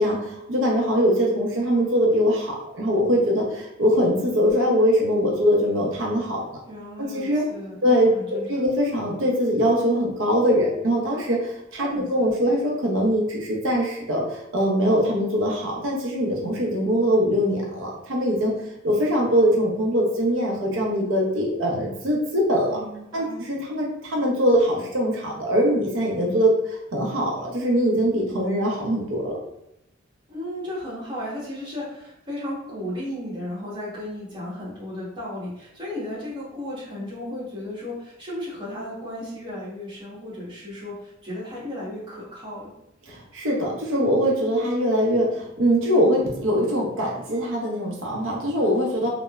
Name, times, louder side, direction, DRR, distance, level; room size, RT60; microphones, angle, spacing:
voice 1, 0.0-6.6 7.1-7.4 7.8-8.1 8.5-18.5 18.8-22.8 23.1-29.4 43.1-49.1, equal, 90° right, -2 dB, 0.6 m, -22 dB
voice 2, 6.7-8.5 11.8-12.1 22.7-23.4 30.3-42.7, left 1 dB, 25° right, -7 dB, 0.9 m, -34 dB
3.0 x 2.0 x 2.3 m, 0.82 s
head